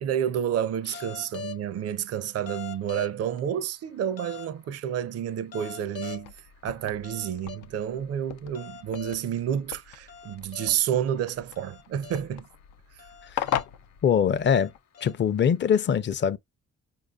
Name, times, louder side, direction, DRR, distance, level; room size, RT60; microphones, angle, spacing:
voice 1, 0.0-6.3 6.6-12.4, right 9 dB, 55° right, 0.6 m, -30 dB
sound 1, 0.9-1.7 2.4-3.4 4.2-4.5 5.4-6.4 7.0-7.6 8.4-9.4 10.1-10.8 11.4-12.4 13.0-13.8 14.4-15.4, left 6 dB, 55° left, 0.9 m, -42 dB
sound 2, 6.1-14.8, left 10 dB, 90° left, 0.6 m, -38 dB
voice 2, 14.0-14.7 15.0-16.4, left 8 dB, 40° left, 0.5 m, -23 dB
4.8 x 2.6 x 2.3 m
cardioid pair, 90°, 30 cm